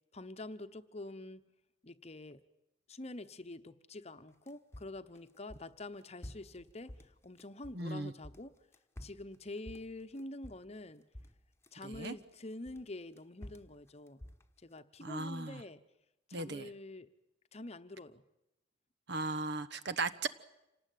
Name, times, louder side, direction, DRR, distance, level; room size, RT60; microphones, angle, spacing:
voice 1, 0.1-1.4 1.8-2.4 2.9-8.5 9.0-11.0 11.7-14.2 14.6-15.8 16.3-17.1 17.5-18.2, left 2 dB, 35° left, 11 dB, 1.0 m, -46 dB
sound 1, 4.3-7.9 8.2-10.9 11.1-12.2 12.7-14.8, left 1 dB, 15° left, 1.2 m, -51 dB
voice 2, 7.7-8.1 11.8-12.1 15.0-15.6 16.3-16.7 19.1-20.3, right 3 dB, 60° right, 14 dB, 1.1 m, -37 dB
27.0 x 18.5 x 9.3 m, 0.90 s
head